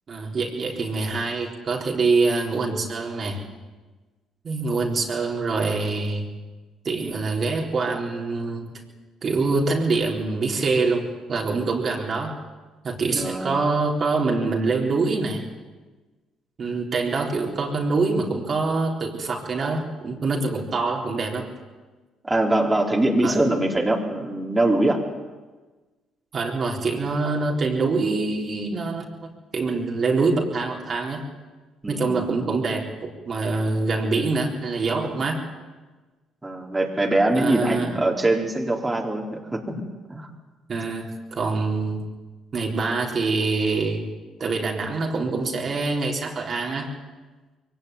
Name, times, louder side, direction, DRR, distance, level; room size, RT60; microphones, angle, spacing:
voice 1, 0.1-3.4 4.4-6.3 6.8-8.7 9.2-12.4 12.8-15.4 16.6-21.5 23.2-23.4 26.3-29.0 29.5-31.2 31.9-35.4 37.3-37.9 40.7-42.0 42.5-44.0 44.4-46.9, right 3 dB, 45° right, 0 dB, 4.0 m, -25 dB
voice 2, 13.1-13.6 22.2-25.0 31.8-32.4 36.4-40.3, right 1 dB, 15° right, 0 dB, 3.9 m, -23 dB
22.5 x 17.5 x 9.5 m, 1.3 s
hypercardioid pair, 55°, 0 cm